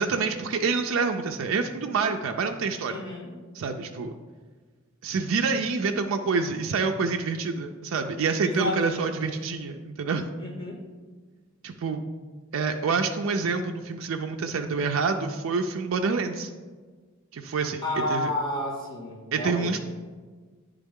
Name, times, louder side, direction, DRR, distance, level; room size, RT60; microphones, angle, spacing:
voice 1, 0.0-3.0 3.5-4.1 5.0-10.3 11.6-12.0 12.5-16.5 17.3-17.8 18.1-18.3 19.3-19.8, right 4 dB, 85° right, 4 dB, 0.4 m, -27 dB
voice 2, 2.9-3.3 8.4-9.3 10.4-10.8 17.8-19.7, left 1 dB, 20° left, -6 dB, 1.9 m, -31 dB
9.9 x 3.5 x 3.6 m, 1.4 s
head